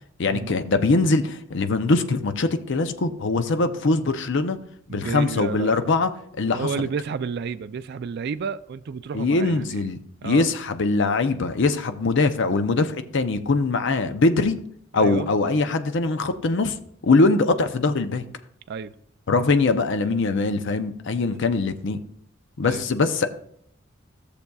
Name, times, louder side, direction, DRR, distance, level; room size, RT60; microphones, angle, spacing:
voice 1, 0.2-4.6 4.9-6.1 6.4-6.7 9.1-14.6 14.9-16.8 17.0-18.2 19.3-22.0 22.6-23.3, left 3 dB, 60° left, 0.6 m, -22 dB
voice 2, 4.9-5.9 6.5-9.7 10.2-10.5 14.9-15.3 17.1-17.2 18.7-18.9 21.3-21.4 22.6-22.8, right 6 dB, 55° right, 0.3 m, -31 dB
14.5 x 6.8 x 2.3 m
head